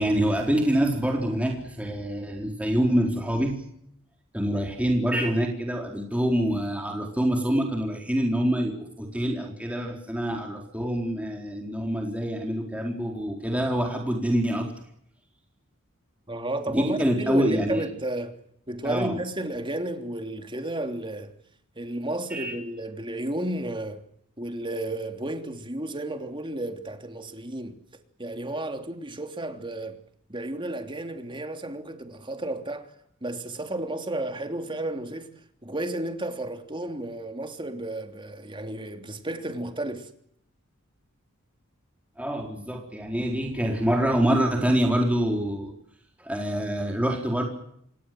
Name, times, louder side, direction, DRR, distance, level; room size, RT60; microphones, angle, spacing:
voice 1, 0.0-3.6 4.3-14.7 16.7-17.8 18.8-19.1 22.3-22.5 42.2-45.7 46.2-47.4, equal, 5° right, 4.2 m, -26 dB
voice 2, 16.3-18.4 18.7-21.3 21.8-24.0 24.4-27.8 28.2-30.0 30.3-32.9 33.2-35.3 35.6-40.1, right 1 dB, 25° right, 3.1 m, -32 dB
27.0 x 21.5 x 7.8 m
head